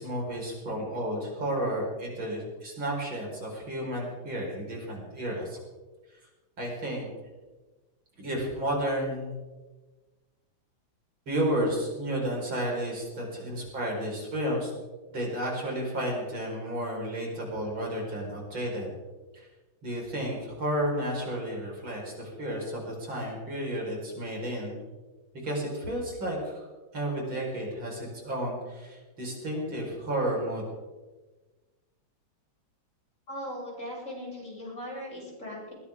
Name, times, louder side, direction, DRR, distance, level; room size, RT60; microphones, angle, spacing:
voice 1, 0.0-5.6 6.6-7.1 8.2-9.3 11.3-14.7 15.1-18.9 19.3-19.5 19.8-24.8 25.3-26.7 26.9-30.6, right 1 dB, 70° right, -2 dB, 5.6 m, -32 dB
voice 2, 33.3-35.7, equal, 35° left, -5 dB, 8.0 m, -39 dB
21.0 x 18.0 x 3.7 m, 1.2 s
omnidirectional pair, 2.3 m